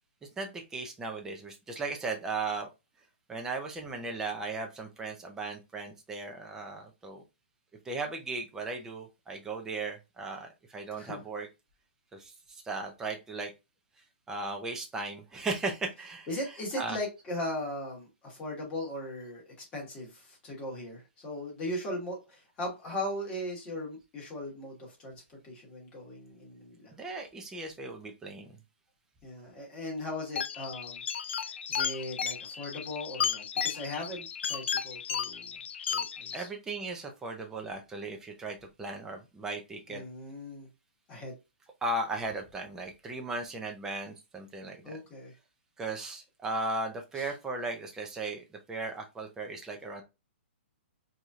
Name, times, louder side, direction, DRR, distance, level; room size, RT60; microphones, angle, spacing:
voice 1, 0.4-2.7 3.3-7.2 7.8-11.5 12.1-13.5 14.3-17.0 26.9-28.6 36.3-40.0 41.8-44.9 45.8-50.0, right 3 dB, 10° right, 0.6 m, -37 dB
voice 2, 16.3-26.9 29.2-31.0 31.3-35.6 35.9-36.5 39.9-40.7 41.1-41.3 44.8-45.3 47.1-47.3, left 1 dB, 15° left, 1.4 m, -38 dB
sound 1, 30.4-36.4, left 7 dB, 70° left, 0.4 m, -34 dB
4.6 x 2.8 x 2.3 m
hypercardioid pair, 160°, 6 cm